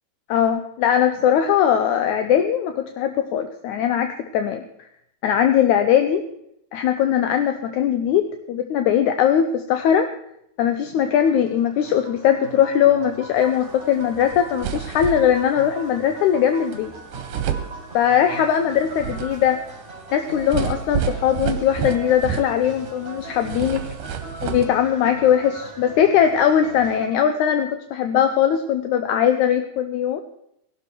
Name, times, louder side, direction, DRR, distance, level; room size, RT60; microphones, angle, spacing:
voice 1, 0.3-4.6 5.2-6.2 6.7-10.1 10.6-16.9 17.9-19.6 20.1-23.8 24.4-30.2, left 9 dB, 75° left, 8 dB, 2.0 m, -20 dB
sound 1, 10.9-27.1, right 2 dB, 20° right, 4.3 m, -39 dB
sound 2, 14.0-14.1 14.3-15.5 16.7-16.8 17.1-18.3 18.7-22.9 23.2-24.7, right 9 dB, 75° right, 2.5 m, -29 dB
18.5 x 12.0 x 4.5 m, 0.76 s
omnidirectional pair, 3.9 m